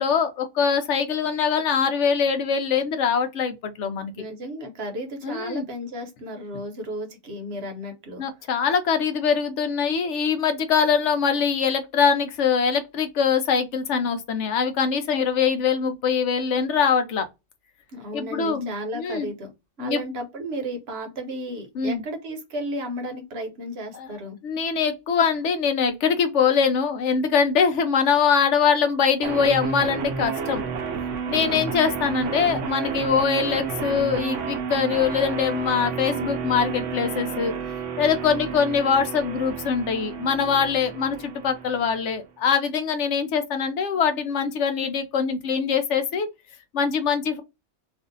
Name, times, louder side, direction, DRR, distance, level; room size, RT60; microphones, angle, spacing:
voice 1, 0.0-4.1 5.2-5.6 8.2-17.3 18.1-19.3 19.8-20.0 21.8-22.0 23.9-24.1 24.4-30.6 31.3-37.5 38.0-46.3 46.7-47.4, left 6 dB, 75° left, 0.9 m, -23 dB
voice 2, 4.1-8.2 17.9-19.5 19.8-24.4 31.3-31.7, equal, 60° right, 1.0 m, -33 dB
sound 1, 29.2-42.2, right 6 dB, 80° right, 1.0 m, -31 dB
2.6 x 2.5 x 3.8 m
omnidirectional pair, 1.3 m